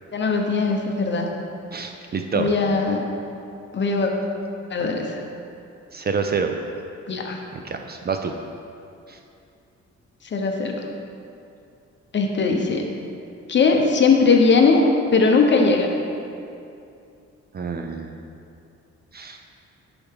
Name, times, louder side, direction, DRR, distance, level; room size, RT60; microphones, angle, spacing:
voice 1, 0.1-1.3 2.4-3.0 3.7-4.1 4.7-5.2 7.1-7.4 10.3-10.8 12.1-12.8 13.5-14.8 15.1-15.9, left 4 dB, 40° left, 2 dB, 0.9 m, -19 dB
voice 2, 1.7-2.5 5.9-6.5 7.5-8.3 9.1-9.2 17.5-18.2 19.1-19.4, right 5 dB, 35° right, 5 dB, 0.4 m, -27 dB
11.0 x 4.9 x 3.6 m, 2.6 s
cardioid pair, 130°, 29 cm